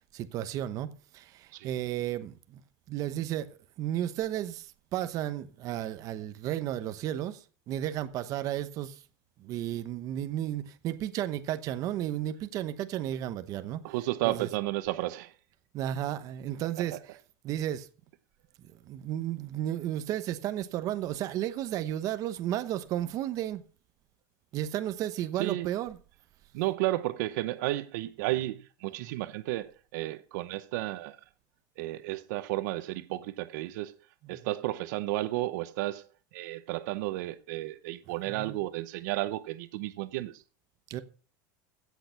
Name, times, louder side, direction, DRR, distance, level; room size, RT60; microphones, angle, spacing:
voice 1, 0.1-2.6 2.9-9.0 9.4-13.8 14.2-14.5 15.7-17.0 17.4-17.9 18.8-23.6 24.5-26.0 29.0-29.1 38.3-38.6 40.9-41.0, right 12 dB, 35° right, 1.0 m, -33 dB
voice 2, 13.8-15.3 16.9-17.0 25.4-25.7 26.5-31.2 31.8-34.0 34.3-36.1 36.3-40.4, right 17 dB, 65° right, 0.8 m, -32 dB
16.5 x 6.7 x 5.8 m
supercardioid pair, 170°, 10 cm